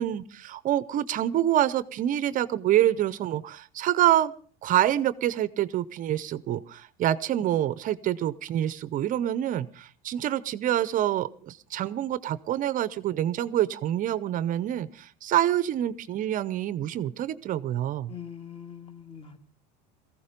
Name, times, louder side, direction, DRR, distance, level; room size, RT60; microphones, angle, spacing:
voice 1, 0.0-4.3 4.6-18.1, right 12 dB, 40° right, 17 dB, 0.7 m, -26 dB
voice 2, 18.1-19.4, left 8 dB, 25° left, 9 dB, 2.2 m, -42 dB
17.5 x 15.0 x 5.2 m, 0.42 s
supercardioid pair, 130°, 21 cm